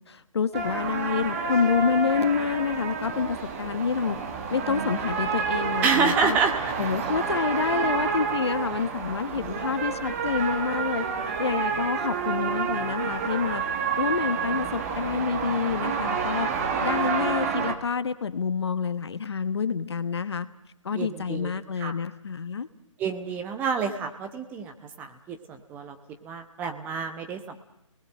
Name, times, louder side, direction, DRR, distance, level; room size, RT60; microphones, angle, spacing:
voice 1, 0.1-4.2 4.5-6.4 6.8-11.1 11.4-13.6 14.0-16.5 16.8-20.5 20.8-22.7, left 6 dB, 55° left, 12 dB, 1.2 m, -28 dB
sound 1, 0.5-17.8, right 5 dB, 30° right, 1.9 m, -29 dB
voice 2, 5.8-6.5 20.9-21.5 21.8-21.9 23.0-26.0 26.2-27.6, right 5 dB, 10° right, 6 dB, 1.0 m, -28 dB
29.0 x 19.5 x 7.6 m, 0.79 s
figure-of-eight pair, 150°, 17 cm